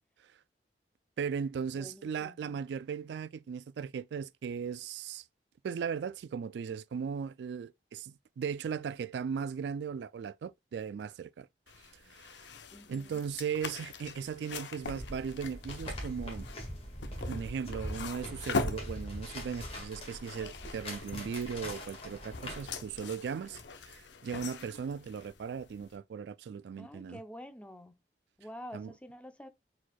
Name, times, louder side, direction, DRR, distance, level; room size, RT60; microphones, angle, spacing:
voice 1, 1.2-5.2 5.6-11.5 11.9-12.4 12.9-16.5 17.3-27.2 28.7-28.9, right 6 dB, 75° right, 0.3 m, -37 dB
voice 2, 1.7-2.6 12.7-13.2 26.8-28.0 28.4-29.5, equal, 5° left, 0.6 m, -48 dB
sound 1, 11.7-26.0, left 4 dB, 90° left, 0.7 m, -42 dB
sound 2, 14.8-23.0, equal, 35° left, 1.8 m, -42 dB
4.6 x 4.3 x 2.3 m
head